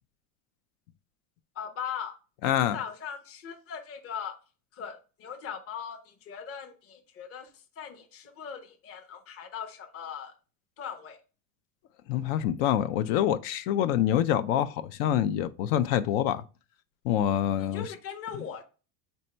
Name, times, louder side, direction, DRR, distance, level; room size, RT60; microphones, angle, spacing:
voice 1, 1.5-2.2 2.6-4.3 4.7-7.5 7.8-10.3 10.8-11.2 17.6-18.6, left 7 dB, 30° left, 0.8 m, -39 dB
voice 2, 2.4-2.8 12.1-16.4 17.0-17.9 18.3-18.4, left 10 dB, 60° left, 0.5 m, -26 dB
4.4 x 2.7 x 4.3 m
hypercardioid pair, 105°, 47 cm